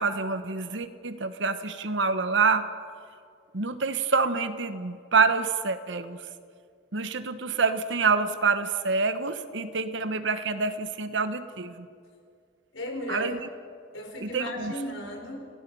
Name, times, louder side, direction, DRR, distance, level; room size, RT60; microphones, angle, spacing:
voice 1, 0.0-2.7 3.5-6.2 6.9-11.9 13.1-13.4 14.2-14.7, right 4 dB, 60° right, 11 dB, 1.1 m, -27 dB
voice 2, 12.7-13.3 13.9-15.4, left 1 dB, 70° left, 2 dB, 4.5 m, -35 dB
29.5 x 17.5 x 5.5 m, 2.2 s
head